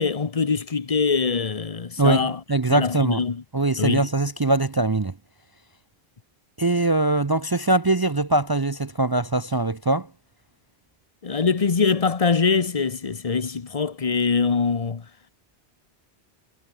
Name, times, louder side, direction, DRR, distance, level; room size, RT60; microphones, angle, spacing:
voice 1, 0.0-2.4 2.7-3.4 3.8-4.1 11.2-15.0, left 5 dB, 35° left, 1.0 m, -23 dB
voice 2, 2.0-3.2 3.5-5.1 6.6-10.1, right 2 dB, 30° right, 0.5 m, -22 dB
omnidirectional pair, 1.1 m